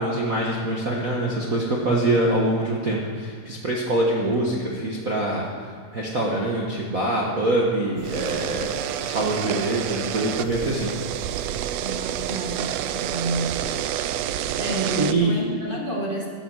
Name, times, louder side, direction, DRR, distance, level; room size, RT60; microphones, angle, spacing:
voice 1, 0.0-5.5 5.9-10.9 15.0-15.3, right 1 dB, 50° right, -3 dB, 1.0 m, -24 dB
sound 1, 8.0-15.1, right 11 dB, 85° right, 1.5 m, -29 dB
voice 2, 11.8-13.5 14.5-16.3, right 2 dB, 25° right, -2 dB, 1.4 m, -29 dB
13.0 x 12.0 x 6.4 m, 2.2 s
omnidirectional pair, 3.7 m